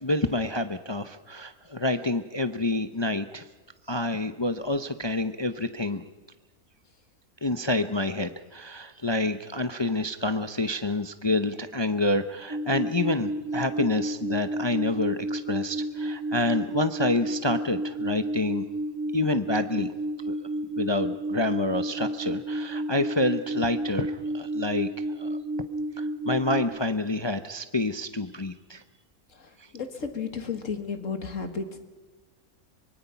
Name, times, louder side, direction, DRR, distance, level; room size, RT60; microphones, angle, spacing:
voice 1, 0.0-3.4 3.9-6.0 7.4-18.6 19.1-19.9 20.3-20.4 20.8-24.9 25.2-25.4 26.0-28.8, left 2 dB, 30° left, 9 dB, 0.5 m, -28 dB
sound 1, 12.5-26.6, right 1 dB, 80° right, 2.2 m, -31 dB
voice 2, 29.3-31.8, left 5 dB, 60° left, 7 dB, 2.1 m, -33 dB
24.5 x 22.5 x 5.8 m, 1.2 s
omnidirectional pair, 1.5 m